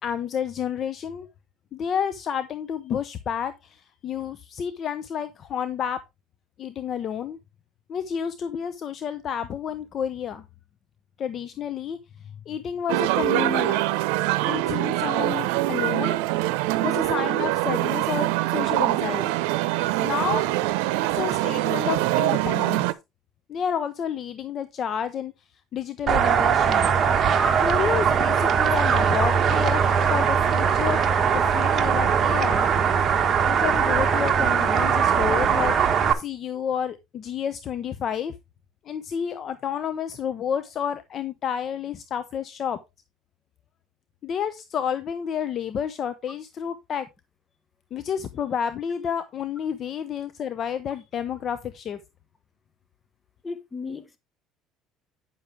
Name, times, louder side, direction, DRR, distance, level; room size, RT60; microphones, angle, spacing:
voice 1, 0.0-1.3 1.7-6.0 6.6-7.4 7.9-10.4 11.2-12.0 12.5-13.8 14.5-16.2 16.8-19.3 20.0-20.4 21.1-22.9 23.5-25.3 25.7-26.9 27.6-32.7 33.4-35.7 36.1-38.3 38.9-42.8 44.2-47.1 47.9-52.0, left 8 dB, 45° left, 0.8 m, -30 dB
sound 1, 12.9-22.9, right 17 dB, 90° right, 0.7 m, -24 dB
sound 2, 26.1-36.1, right 7 dB, 35° right, 1.5 m, -21 dB
voice 2, 53.4-54.2, left 4 dB, 20° left, 1.2 m, -35 dB
9.6 x 6.8 x 3.4 m
cardioid pair, 120°, 0 cm